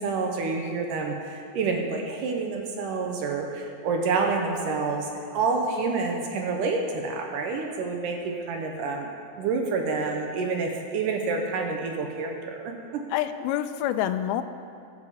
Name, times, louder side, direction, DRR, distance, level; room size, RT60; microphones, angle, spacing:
voice 1, 0.0-9.1 9.4-13.0, right 4 dB, 70° right, 2 dB, 2.2 m, -28 dB
voice 2, 13.1-14.4, left 11 dB, 85° left, 10 dB, 2.5 m, -27 dB
20.5 x 6.9 x 4.9 m, 2.5 s
omnidirectional pair, 4.3 m